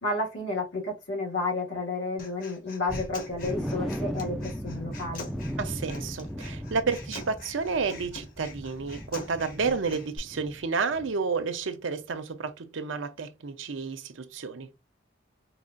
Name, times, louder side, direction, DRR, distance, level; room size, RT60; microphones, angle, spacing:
voice 1, 0.0-5.3, left 2 dB, 75° left, 1.6 m, -31 dB
Human voice, 2.2-10.2, left 2 dB, 45° left, 1.0 m, -45 dB
sound 1, 2.9-10.7 10.9-11.1 11.5-11.6, equal, ahead, 0.3 m, -37 dB
voice 2, 5.6-14.7, right 4 dB, 85° right, 0.6 m, -31 dB
4.8 x 2.4 x 2.5 m
head